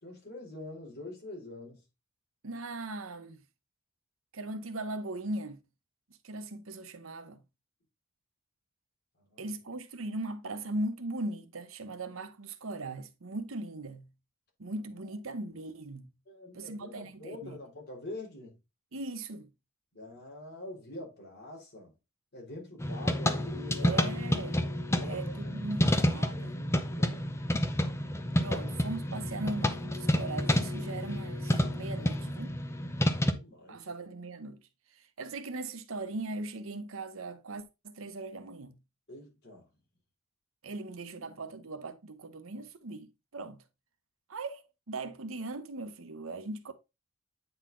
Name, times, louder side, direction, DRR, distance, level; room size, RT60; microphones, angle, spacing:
voice 1, 0.0-1.8 9.2-9.5 16.2-18.6 19.9-21.9 22.3-24.0 25.0-25.5 25.8-27.4 28.5-28.6 32.9-33.9 39.1-39.7, left 2 dB, 50° left, 3.3 m, -45 dB
voice 2, 2.4-3.4 4.3-5.6 6.2-7.4 9.4-14.1 14.6-16.1 16.5-17.6 18.9-19.5 23.8-24.6 25.0-26.6 28.4-32.5 33.7-34.6 34.9-38.8 40.6-43.6 44.3-46.7, right 2 dB, 75° right, 0.9 m, -39 dB
sound 1, 22.8-33.3, left 1 dB, 15° left, 0.6 m, -29 dB
8.7 x 4.0 x 3.7 m
head